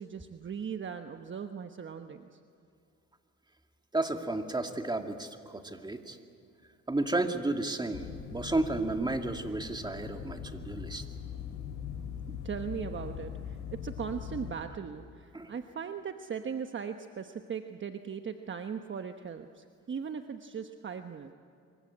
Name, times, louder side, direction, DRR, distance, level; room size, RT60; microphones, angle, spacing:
voice 1, 0.0-2.4 12.3-21.3, right 6 dB, 40° right, 7 dB, 1.1 m, -39 dB
voice 2, 3.9-6.2 6.9-11.0 15.3-15.5, right 2 dB, 15° right, 5 dB, 2.2 m, -32 dB
sound 1, 7.9-14.5, left 8 dB, 80° left, 4.3 m, -41 dB
26.0 x 23.5 x 8.6 m, 2.4 s
cardioid pair, 90°, 30 cm